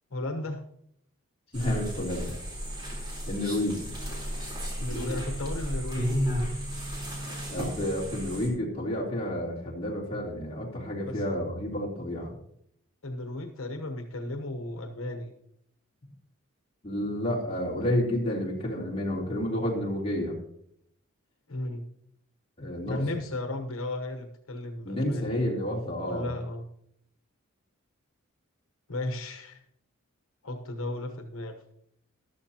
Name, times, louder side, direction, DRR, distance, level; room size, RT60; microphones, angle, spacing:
voice 1, 0.1-0.6 4.8-6.2 11.0-11.3 13.0-15.3 21.5-21.8 22.9-25.4 26.1-26.6 28.9-29.6 30.4-31.6, left 2 dB, 80° left, 5 dB, 1.1 m, -34 dB
voice 2, 1.5-2.3 3.2-3.8 7.5-12.3 16.8-20.4 22.6-23.0 24.8-26.3, left 1 dB, 25° left, -3 dB, 3.2 m, -30 dB
sound 1, 1.5-8.5, equal, 20° right, 3.8 m, -33 dB
14.0 x 12.0 x 2.9 m, 0.69 s
head